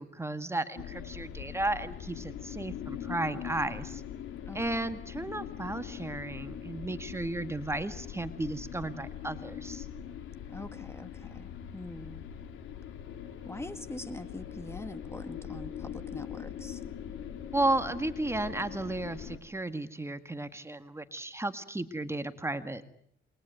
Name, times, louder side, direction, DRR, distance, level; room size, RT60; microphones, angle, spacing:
voice 1, 0.0-4.0 4.5-9.9 17.5-22.8, right 2 dB, 15° right, 10 dB, 1.8 m, -34 dB
sound 1, 0.8-19.4, left 9 dB, 80° left, 3.5 m, -42 dB
voice 2, 4.5-4.8 10.5-12.2 13.5-16.8, left 2 dB, 15° left, 11 dB, 1.9 m, -43 dB
28.5 x 22.0 x 9.2 m, 0.69 s
cardioid pair, 90°, 20 cm